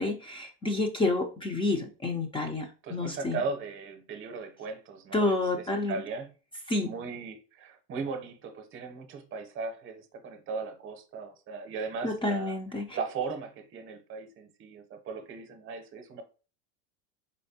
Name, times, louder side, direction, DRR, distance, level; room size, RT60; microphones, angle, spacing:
voice 1, 0.0-3.4 5.1-6.0 6.7-6.9 12.0-12.8, left 2 dB, 15° left, 0.5 m, -29 dB
voice 2, 2.8-6.3 6.8-12.6 12.9-16.2, right 4 dB, 40° right, 0.8 m, -37 dB
4.4 x 3.1 x 2.8 m
supercardioid pair, 125°, 31 cm